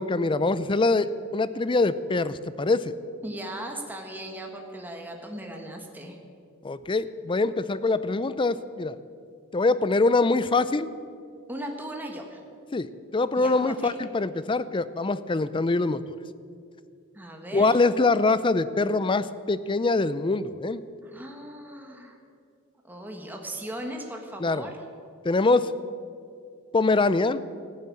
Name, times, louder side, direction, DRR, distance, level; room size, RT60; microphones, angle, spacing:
voice 1, 0.0-2.9 6.6-9.0 9.5-10.9 12.7-16.2 17.5-20.8 24.4-24.7 25.2-25.7 26.7-27.4, left 3 dB, 25° left, 15 dB, 0.5 m, -24 dB
voice 2, 3.2-6.2 11.5-12.4 13.4-14.0 17.1-17.8 21.0-22.2 22.8-24.8, right 1 dB, 10° right, 2 dB, 1.5 m, -38 dB
14.5 x 9.8 x 8.6 m, 2.3 s
head